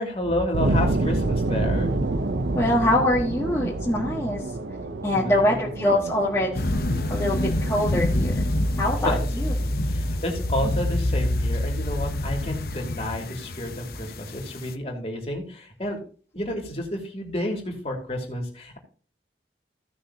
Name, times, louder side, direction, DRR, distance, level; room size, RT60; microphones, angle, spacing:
voice 1, 0.0-1.9 5.1-5.5 9.0-9.2 9.9-16.0 16.3-18.8, left 1 dB, 35° left, 1 dB, 2.8 m, -30 dB
sound 1, 0.5-11.3, right 2 dB, 80° right, 0.8 m, -29 dB
voice 2, 2.5-4.4 5.0-6.7 7.1-8.4 8.8-9.5, left 1 dB, 15° left, -6 dB, 1.6 m, -24 dB
sound 2, 6.5-14.7, left 1 dB, 55° left, 0.8 m, -26 dB
16.0 x 6.4 x 2.9 m, 0.40 s
head